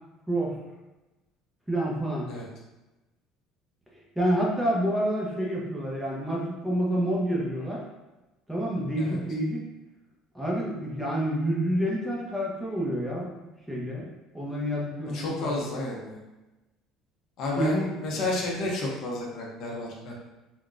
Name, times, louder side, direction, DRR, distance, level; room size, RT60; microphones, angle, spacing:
voice 1, 1.7-2.3 4.2-7.8 8.5-9.6 10.3-13.3 13.7-15.5 17.6-18.2, equal, 5° right, -4 dB, 0.7 m, -28 dB
voice 2, 15.1-16.2 17.4-20.1, left 2 dB, 60° left, -3 dB, 0.7 m, -31 dB
3.7 x 2.2 x 2.4 m, 1.1 s
cardioid pair, 125°, 0 cm